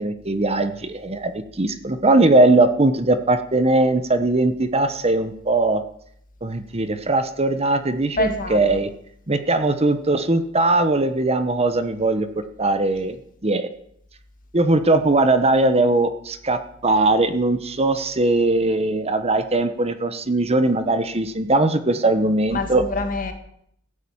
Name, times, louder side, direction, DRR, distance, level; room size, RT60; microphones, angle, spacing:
voice 1, 0.0-5.8 6.4-8.9 9.3-12.3 12.6-13.2 13.4-13.7 14.5-22.8, right 2 dB, 30° right, 10 dB, 1.0 m, -20 dB
voice 2, 8.2-8.8 22.5-23.3, left 2 dB, 40° left, 7 dB, 2.2 m, -25 dB
15.0 x 9.9 x 8.8 m, 0.69 s
head